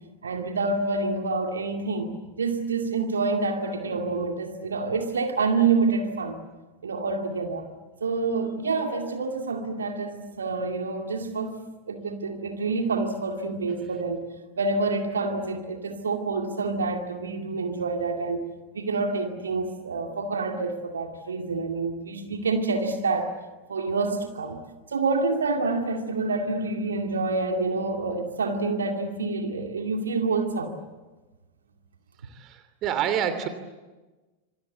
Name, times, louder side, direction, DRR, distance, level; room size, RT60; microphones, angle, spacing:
voice 1, 0.2-2.1 2.4-6.4 6.8-7.7 8.0-11.5 11.9-14.2 14.6-18.4 18.7-23.3 23.7-24.6 24.9-30.7, right 3 dB, 70° right, 4 dB, 2.4 m, -27 dB
voice 2, 32.2-33.5, right 9 dB, 35° right, 11 dB, 2.8 m, -28 dB
27.0 x 25.5 x 8.2 m, 1.2 s
figure-of-eight pair, 90°, 0 cm